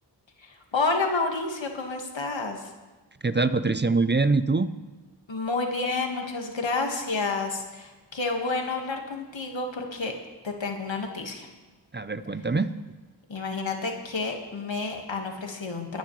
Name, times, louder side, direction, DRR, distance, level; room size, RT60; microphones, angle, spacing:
voice 1, 0.4-2.7 5.3-10.1 10.4-11.5 13.3-16.0, left 3 dB, 90° left, 2 dB, 1.8 m, -30 dB
voice 2, 3.2-4.7 11.9-12.7, right 3 dB, 25° right, 13 dB, 0.5 m, -24 dB
22.5 x 10.5 x 3.2 m, 1.2 s
wide cardioid pair, 50°, 44 cm